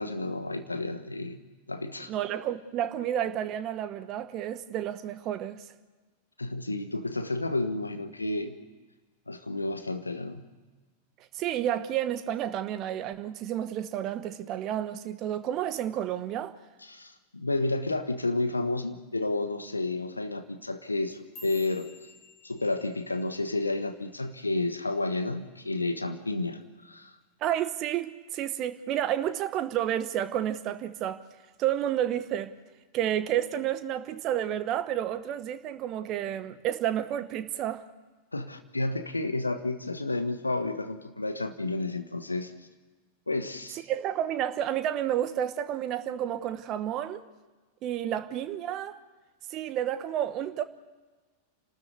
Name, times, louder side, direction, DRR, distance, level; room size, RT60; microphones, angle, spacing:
voice 1, 0.0-1.4 1.7-2.1 6.4-8.5 9.3-10.4 16.8-21.9 22.4-27.1 38.3-42.5 43.3-43.8, left 2 dB, 80° left, 1.3 m, -31 dB
voice 2, 2.1-5.7 11.3-16.6 27.4-31.3 31.6-32.5 32.9-37.9 43.9-47.2 47.8-49.0 49.5-50.6, right 11 dB, 35° right, 1.0 m, -30 dB
sound 1, 20.9-25.3 25.6-26.0 26.4-26.8 27.2-27.4 28.0-28.4 28.8-29.6 30.0-30.4 31.2-31.3, left 3 dB, 35° left, 7.5 m, -54 dB
29.0 x 13.0 x 8.2 m
figure-of-eight pair, 90°, 0 cm